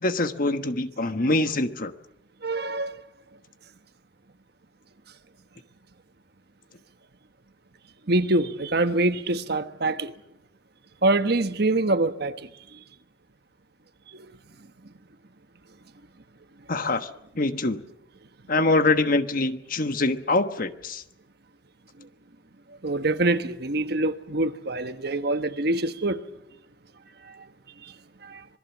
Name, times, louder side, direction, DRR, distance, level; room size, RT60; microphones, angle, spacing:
voice 1, 0.0-1.9 16.7-17.1 17.3-17.8 18.5-21.0, left 2 dB, 45° left, 1.3 m, -24 dB
voice 2, 2.4-3.0 8.1-10.1 11.0-12.8 14.1-14.3 22.8-26.2 27.2-27.4 27.8-27.9 28.2-28.4, right 2 dB, 55° right, 1.3 m, -25 dB
26.0 x 21.5 x 7.3 m
head